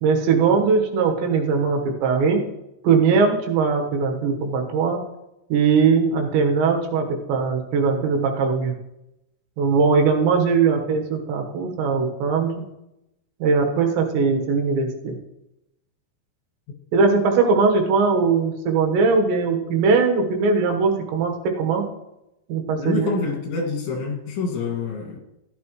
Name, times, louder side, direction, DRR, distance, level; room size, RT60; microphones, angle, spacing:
voice 1, 0.0-2.5 2.8-5.0 5.5-8.7 9.6-12.6 13.4-15.1 16.9-21.9 22.5-23.2, right 5 dB, 80° right, 3 dB, 3.5 m, -20 dB
voice 2, 22.8-25.2, left 4 dB, 85° left, 1 dB, 4.4 m, -27 dB
14.5 x 10.5 x 3.1 m, 0.89 s
omnidirectional pair, 5.1 m